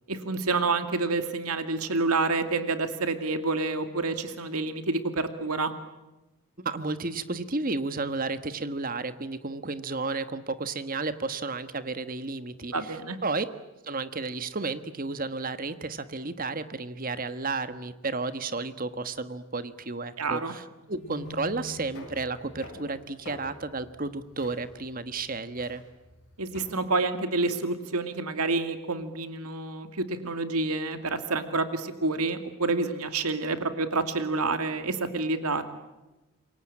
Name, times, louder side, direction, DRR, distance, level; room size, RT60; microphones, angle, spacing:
voice 1, 0.1-5.7 12.7-13.2 20.2-20.5 26.4-35.6, right 3 dB, 90° right, 9 dB, 2.5 m, -28 dB
voice 2, 6.6-13.0 13.2-13.5 13.8-25.8, right 3 dB, 40° right, 12 dB, 1.4 m, -32 dB
sound 1, 20.8-26.7, left 2 dB, 55° left, 6.6 m, -46 dB
27.5 x 23.5 x 8.7 m, 1.0 s
head